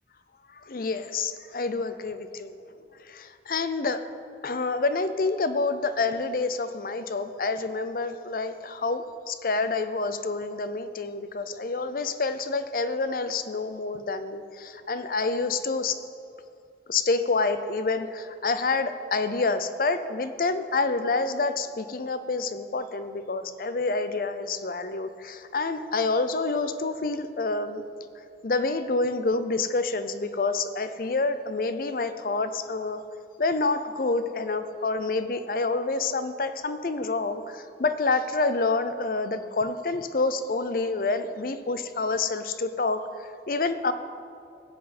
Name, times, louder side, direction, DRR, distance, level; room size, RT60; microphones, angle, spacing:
voice 1, 0.5-2.5 2.9-4.0 4.4-16.0 16.9-27.8 28.4-33.0 33.4-43.9, left 3 dB, 50° left, 11 dB, 0.5 m, -28 dB
16.0 x 7.9 x 4.2 m, 2.4 s
head